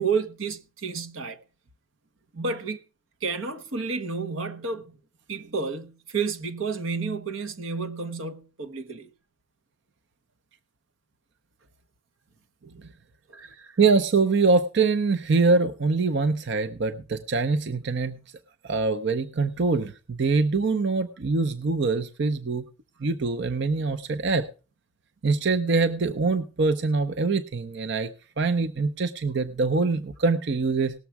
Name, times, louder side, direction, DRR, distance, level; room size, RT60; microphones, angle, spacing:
voice 1, 0.0-1.4 2.3-2.8 3.2-5.0 5.3-9.1 13.3-13.8, right 5 dB, 85° right, 1.1 m, -31 dB
voice 2, 13.8-18.2 18.6-22.6 23.0-24.4 25.2-28.1 28.4-30.9, right 4 dB, 60° right, 0.6 m, -24 dB
18.5 x 7.1 x 4.6 m
head